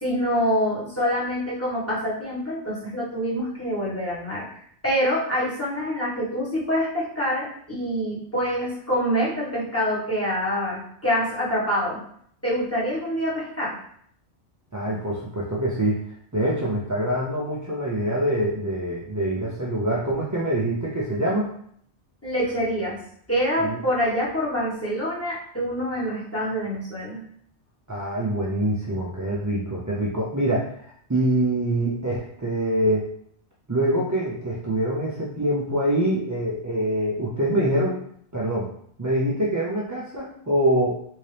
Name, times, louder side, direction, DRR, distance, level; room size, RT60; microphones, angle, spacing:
voice 1, 0.0-4.4 4.8-12.0 12.4-13.8 22.2-23.0 23.3-27.2, equal, 15° left, -7 dB, 1.2 m, -26 dB
voice 2, 14.7-16.0 16.3-21.5 23.6-23.8 27.9-33.1 33.7-38.0 38.3-38.7 39.0-41.0, right 1 dB, 30° right, -6 dB, 0.3 m, -25 dB
3.6 x 2.7 x 3.3 m, 0.65 s
omnidirectional pair, 1.2 m